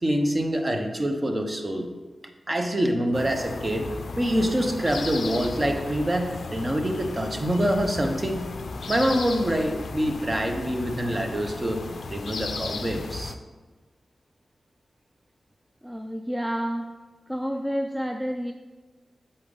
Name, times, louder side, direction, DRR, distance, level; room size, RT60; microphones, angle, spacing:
voice 1, 0.0-1.9 2.5-8.5 8.9-11.8 12.1-13.3, equal, 30° right, 4 dB, 0.9 m, -25 dB
sound 1, 3.1-13.3, left 4 dB, 70° left, 0.4 m, -35 dB
voice 2, 15.8-16.9 17.3-18.5, equal, 10° right, 5 dB, 0.4 m, -29 dB
7.5 x 4.0 x 3.9 m, 1.3 s
cardioid pair, 55°, 0 cm